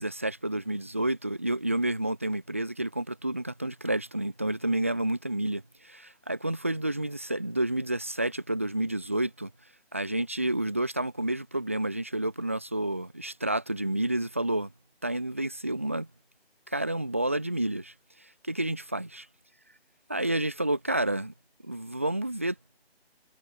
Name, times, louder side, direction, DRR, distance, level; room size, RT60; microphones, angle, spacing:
voice 1, 0.0-9.5 9.9-14.7 15.0-16.1 16.7-17.9 18.4-19.3 20.1-21.3 21.6-22.6, right 1 dB, 15° right, 1.0 m, -30 dB
figure-of-eight pair, 170°, 31 cm